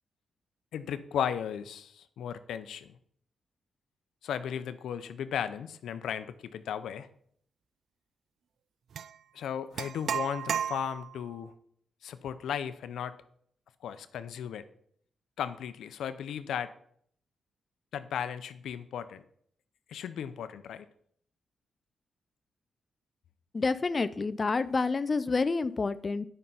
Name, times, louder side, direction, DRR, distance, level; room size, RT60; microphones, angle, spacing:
voice 1, 0.7-2.9 4.2-7.1 9.3-11.5 12.0-13.1 13.8-14.6 15.4-16.7 17.9-19.2 19.9-20.9, left 8 dB, 85° left, 12 dB, 0.6 m, -35 dB
sound 1, 8.9-9.1 9.8-11.2, right 8 dB, 70° right, 0.4 m, -33 dB
voice 2, 23.5-26.3, left 4 dB, 35° left, 13 dB, 0.4 m, -28 dB
10.0 x 5.5 x 5.5 m, 0.65 s
cardioid pair, 95°, 0 cm